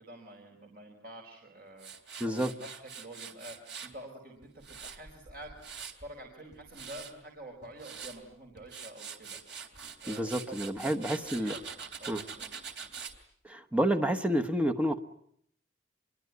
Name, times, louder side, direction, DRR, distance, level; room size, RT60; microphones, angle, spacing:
voice 1, 0.0-1.9 2.3-5.6 5.8-9.4 10.0-11.6 12.0-12.5, right 1 dB, 55° right, 2 dB, 4.8 m, -48 dB
Tools, 1.8-3.9 4.4-6.1 6.5-7.1 7.6-8.2 8.6-13.2, right 6 dB, 70° right, 3.3 m, -44 dB
voice 2, 2.2-2.5 10.1-11.5 12.1-12.2 13.4-15.0, right 1 dB, 5° right, 9 dB, 1.2 m, -29 dB
27.0 x 22.5 x 9.4 m, 0.69 s
head